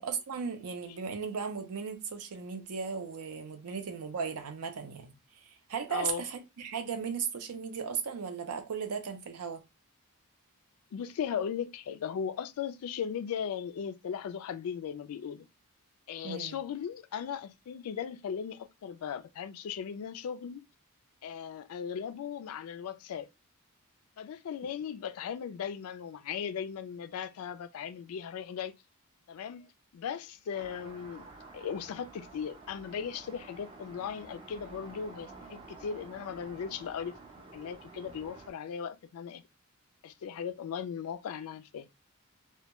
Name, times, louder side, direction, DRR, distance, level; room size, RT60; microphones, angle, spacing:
voice 1, 0.0-5.1 5.4-9.6 16.2-16.6, right 6 dB, 85° right, 0.5 m, -36 dB
voice 2, 5.9-6.2 10.9-15.5 16.1-20.6 21.2-23.3 24.2-28.7 29.3-31.3 31.5-37.1 37.5-39.4 40.0-41.9, left 7 dB, 70° left, 0.3 m, -37 dB
sound 1, 30.5-38.5, right 3 dB, 25° right, 0.4 m, -50 dB
2.2 x 2.1 x 2.8 m
head